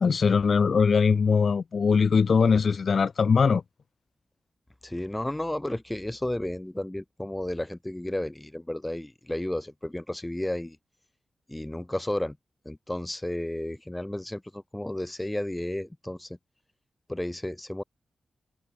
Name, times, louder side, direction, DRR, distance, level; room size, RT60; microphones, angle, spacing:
voice 1, 0.0-3.6, left 5 dB, 50° left, 0.3 m, -21 dB
voice 2, 4.8-10.8 11.5-12.4 12.6-16.4 17.1-17.8, left 1 dB, 10° left, 0.7 m, -32 dB
wide cardioid pair, 165°, 0 cm